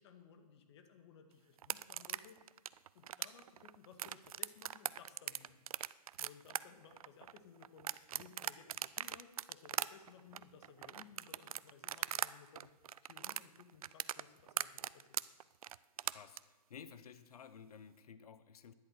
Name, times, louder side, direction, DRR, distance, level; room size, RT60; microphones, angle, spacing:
voice 1, 0.0-2.4 2.9-5.6 5.8-12.7 13.0-15.2, left 7 dB, 40° left, 6 dB, 1.8 m, -59 dB
sound 1, 1.6-12.3 12.6-16.4, right 10 dB, 60° right, 0.5 m, -40 dB
voice 2, 16.0-18.7, left 7 dB, 65° left, 13 dB, 0.9 m, -54 dB
13.0 x 10.5 x 6.6 m, 1.2 s
hypercardioid pair, 150°, 21 cm